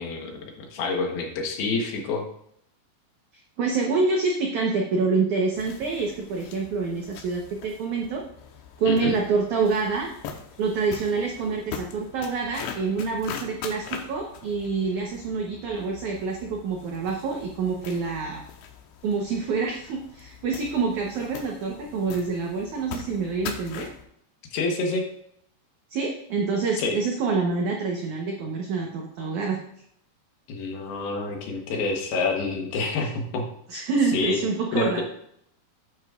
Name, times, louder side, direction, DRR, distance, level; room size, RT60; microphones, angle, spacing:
voice 1, 0.0-2.2 8.9-9.1 24.5-25.0 26.8-27.0 30.5-33.5 34.1-34.4 34.7-35.0, left 3 dB, 70° left, 2 dB, 3.1 m, -27 dB
voice 2, 3.6-8.2 8.8-10.1 10.6-18.4 19.0-23.9 25.9-29.6 33.7-35.0, right 4 dB, 75° right, 0 dB, 1.8 m, -27 dB
sound 1, 5.5-24.0, left 7 dB, 85° left, 3.1 m, -42 dB
11.0 x 9.0 x 2.5 m, 0.70 s
omnidirectional pair, 5.0 m